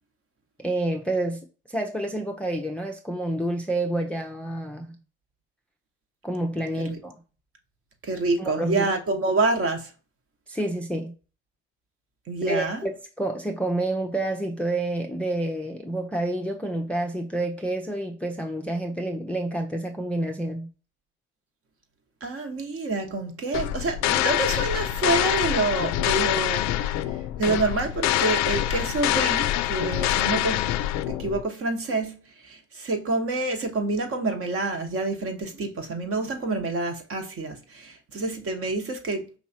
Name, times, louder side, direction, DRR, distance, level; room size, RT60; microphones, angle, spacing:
voice 1, 0.6-4.9 6.2-7.2 8.4-8.9 10.5-11.1 12.5-20.7, right 1 dB, 5° left, 0.5 m, -29 dB
voice 2, 8.0-9.9 12.3-12.8 22.2-30.7 31.1-39.4, right 3 dB, 40° right, 1.2 m, -27 dB
sound 1, 23.5-31.4, left 14 dB, 55° left, 0.4 m, -25 dB
4.8 x 3.0 x 2.7 m
hypercardioid pair, 65°, 33 cm